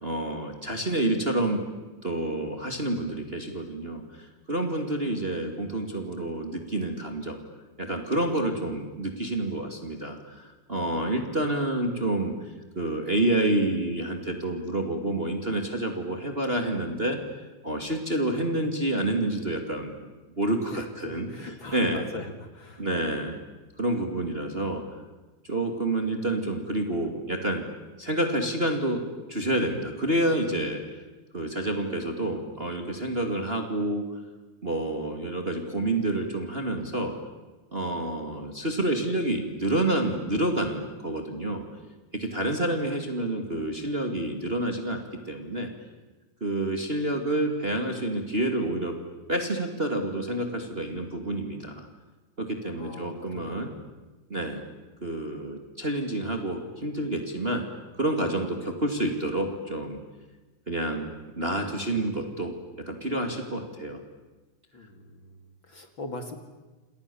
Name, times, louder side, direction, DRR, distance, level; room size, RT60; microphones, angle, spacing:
voice 1, 0.0-1.6 2.0-7.4 7.8-12.3 12.7-17.2 17.6-19.9 20.4-22.0 22.8-23.4 23.8-24.8 25.5-27.6 28.0-29.0 29.3-30.8 31.3-34.0 34.6-37.1 37.7-41.6 42.1-45.7 46.4-48.9 49.3-51.9 52.4-53.7 54.3-54.6 55.0-57.6 58.0-60.0 60.7-62.5 62.9-64.0, right 1 dB, 20° right, 5 dB, 2.3 m, -28 dB
voice 2, 20.7-22.9 52.8-53.9 64.7-66.4, left 2 dB, 45° left, 7 dB, 2.6 m, -41 dB
28.5 x 28.5 x 7.1 m, 1.3 s
omnidirectional pair, 3.5 m